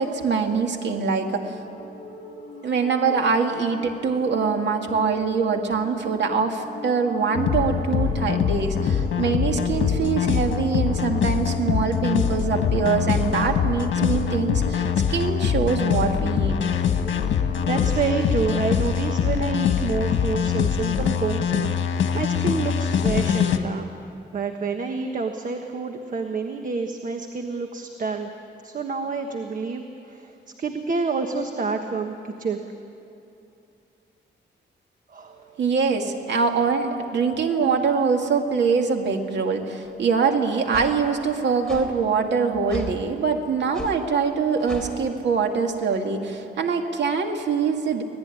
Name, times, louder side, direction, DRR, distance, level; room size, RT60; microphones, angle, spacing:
voice 1, 0.0-1.7 2.6-16.6 35.6-48.0, right 5 dB, 65° right, 4 dB, 2.3 m, -24 dB
sound 1, 1.0-18.6, left 1 dB, 35° left, 6.4 m, -40 dB
sound 2, 7.3-23.6, left 8 dB, 80° left, 1.6 m, -23 dB
voice 2, 8.8-9.2 10.6-11.2 17.3-28.3 28.6-32.6 35.1-35.4, right 4 dB, 45° right, 5 dB, 1.4 m, -29 dB
sound 3, 39.8-39.9 40.7-40.9 41.7-41.9 42.7-42.9 43.7-44.0 44.6-44.9, left 1 dB, 5° left, 3.7 m, -35 dB
25.5 x 18.0 x 9.9 m, 2.7 s
wide cardioid pair, 135°, 19 cm